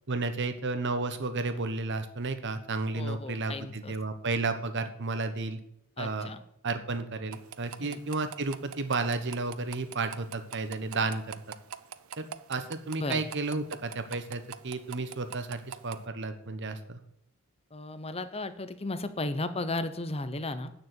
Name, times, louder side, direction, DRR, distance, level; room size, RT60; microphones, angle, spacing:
voice 1, 0.1-5.6 6.0-6.3 6.6-11.2 12.2-17.0, right 3 dB, 55° right, 9 dB, 1.2 m, -32 dB
voice 2, 2.9-3.9 6.0-6.4 7.8-8.0 13.0-13.2 17.7-20.7, left 2 dB, 30° left, 11 dB, 0.9 m, -35 dB
sound 1, 7.3-16.0, right 8 dB, 70° right, 0.6 m, -45 dB
9.4 x 6.8 x 8.1 m, 0.74 s
head